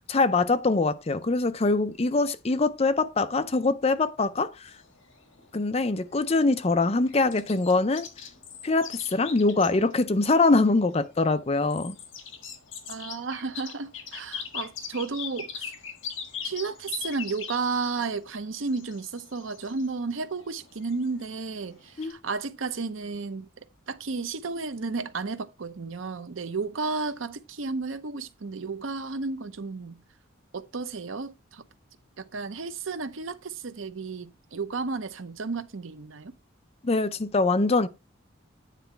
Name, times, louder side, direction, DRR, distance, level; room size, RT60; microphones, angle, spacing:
voice 1, 0.1-4.7 5.5-8.1 8.6-11.9 22.0-22.2 36.8-37.9, left 3 dB, 30° left, 0.5 m, -23 dB
sound 1, 4.7-22.1, left 7 dB, 70° left, 1.6 m, -41 dB
voice 2, 12.9-15.7 16.4-23.5 23.9-30.0 30.5-31.6 32.2-36.3, right 4 dB, 80° right, 0.7 m, -33 dB
9.2 x 4.0 x 4.5 m
head